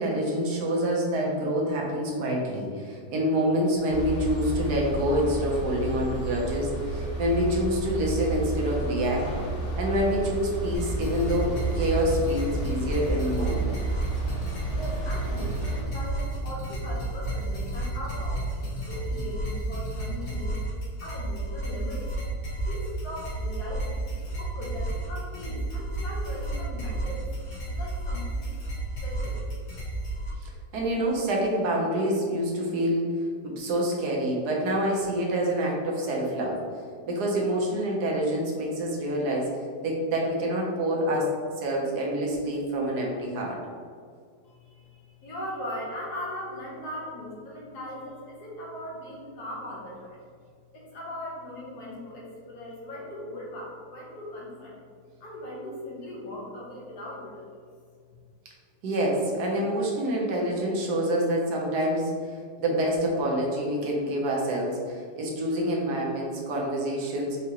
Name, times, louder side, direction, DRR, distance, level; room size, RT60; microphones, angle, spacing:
voice 1, 0.0-9.3 9.8-13.7 30.4-36.7 37.1-43.6 58.8-67.4, equal, 70° right, -2 dB, 1.3 m, -27 dB
sound 1, 3.9-15.8, right 2 dB, 50° left, 1.7 m, -32 dB
sound 2, 10.7-30.3, right 1 dB, 90° left, 1.9 m, -32 dB
voice 2, 14.7-20.6 21.0-22.1 22.6-24.1 24.4-28.5 29.0-29.4 44.4-50.2 50.7-54.8 55.2-57.5, left 1 dB, 70° left, -4 dB, 1.5 m, -39 dB
4.8 x 2.9 x 2.9 m, 2.1 s
omnidirectional pair, 1.8 m